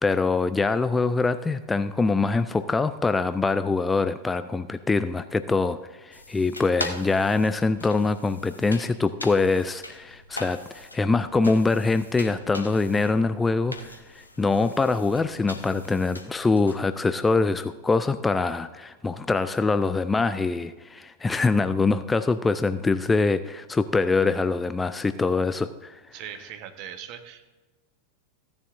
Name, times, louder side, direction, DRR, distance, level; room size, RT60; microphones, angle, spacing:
voice 1, 0.0-26.0, left 3 dB, 10° left, 12 dB, 0.3 m, -24 dB
sound 1, 6.1-16.8, left 2 dB, 80° left, 0.9 m, -41 dB
voice 2, 26.1-27.5, right 9 dB, 45° right, 8 dB, 1.1 m, -40 dB
15.5 x 10.5 x 2.6 m, 1.3 s
figure-of-eight pair, 90°, 0 cm